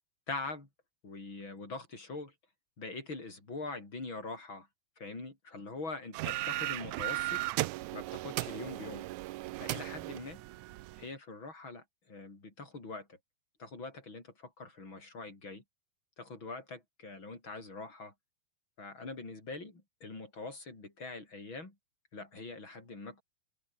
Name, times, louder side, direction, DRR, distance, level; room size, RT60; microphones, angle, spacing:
voice 1, 0.3-0.7 1.0-2.3 2.8-4.7 5.0-7.4 7.9-9.1 9.6-10.4 11.0-13.2 13.6-15.6 16.2-18.1 18.8-21.8 22.1-23.2, left 3 dB, 35° left, 7.2 m, -43 dB
sound 1, 6.1-11.1, right 18 dB, 75° right, 1.9 m, -36 dB
open air
omnidirectional pair, 3.8 m